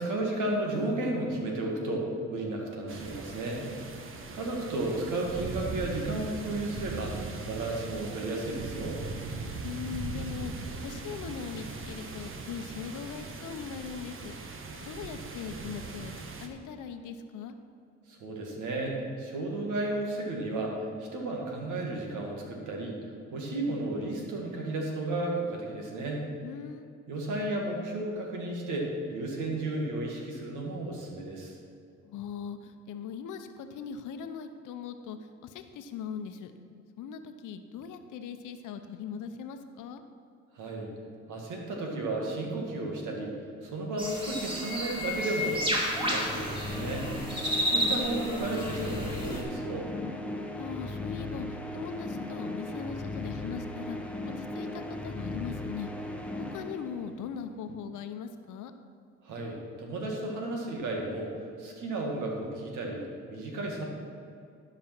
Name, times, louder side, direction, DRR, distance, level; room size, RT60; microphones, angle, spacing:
voice 1, 0.0-3.6 4.3-9.0 18.1-23.0 23.3-26.3 27.1-31.6 40.5-40.9 41.3-43.3 43.6-47.1 47.7-49.9 59.2-61.3 61.6-63.8, right 2 dB, 85° right, 0 dB, 2.1 m, -33 dB
sound 1, 2.9-16.5, right 3 dB, 45° right, 1.1 m, -40 dB
voice 2, 9.6-14.4 14.9-16.1 16.4-17.5 26.4-26.9 32.0-36.5 37.0-40.0 50.6-51.5 51.7-54.0 54.4-55.9 56.5-58.7, left 7 dB, 85° left, 8 dB, 0.8 m, -40 dB
sound 2, 44.0-49.4, equal, 15° right, 2.5 m, -31 dB
sound 3, 45.6-57.4, left 2 dB, 5° left, 0.9 m, -37 dB
12.0 x 5.3 x 6.1 m, 2.4 s
cardioid pair, 90°, 30 cm